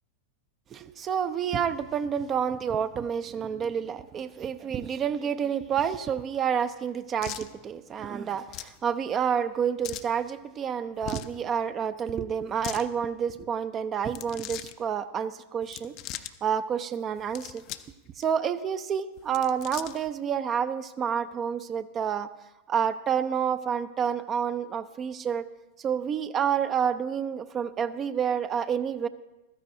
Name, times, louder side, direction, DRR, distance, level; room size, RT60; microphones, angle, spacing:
voice 1, 0.7-15.9 16.4-17.6 18.2-22.3 22.7-25.5 25.8-29.1, right 7 dB, 25° right, 12 dB, 0.4 m, -29 dB
sound 1, 7.2-7.5 8.5-8.8 9.8-10.1 11.0-11.4 12.4-12.8 14.0-14.7 15.6-16.3 17.2-17.9 18.2-18.3 19.2-20.1, left 13 dB, 40° left, 0.5 m, -39 dB
15.0 x 13.5 x 2.6 m, 1.0 s
figure-of-eight pair, 90°, 0 cm